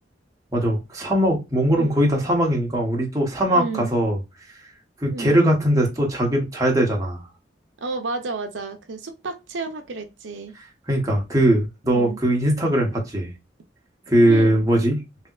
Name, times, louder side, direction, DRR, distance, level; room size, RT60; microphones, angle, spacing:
voice 1, 0.5-4.2 5.0-7.2 10.9-13.3 14.1-15.0, right 1 dB, 20° right, 0.8 m, -20 dB
voice 2, 3.5-3.9 5.1-5.4 7.8-10.5 11.8-12.2 14.2-14.6, right 3 dB, 80° right, 0.6 m, -31 dB
3.3 x 2.8 x 2.3 m
head